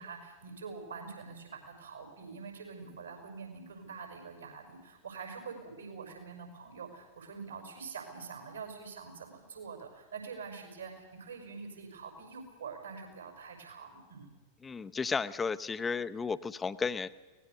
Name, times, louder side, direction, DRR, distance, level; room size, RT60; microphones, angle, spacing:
voice 1, 0.0-14.3, right 5 dB, 75° right, 4 dB, 5.8 m, -45 dB
voice 2, 14.6-17.1, left 5 dB, 15° left, 12 dB, 0.8 m, -33 dB
23.5 x 19.0 x 6.8 m, 1.2 s
figure-of-eight pair, 90°, 0 cm